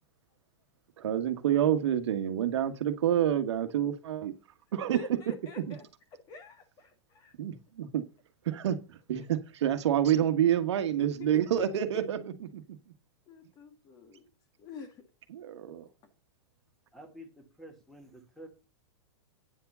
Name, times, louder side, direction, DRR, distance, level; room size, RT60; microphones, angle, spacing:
voice 1, 1.0-4.3 4.7-5.0 5.7-5.8 7.4-8.0 8.5-12.6 15.3-15.9, right 10 dB, 80° right, 1.4 m, -28 dB
voice 2, 4.9-5.8 6.3-7.3 9.2-9.3 10.6-12.1 13.3-14.3 14.6-15.0, left 4 dB, 25° left, 1.6 m, -47 dB
voice 3, 16.9-18.5, equal, ahead, 1.9 m, -49 dB
9.4 x 4.7 x 6.8 m
supercardioid pair, 160°, 14 cm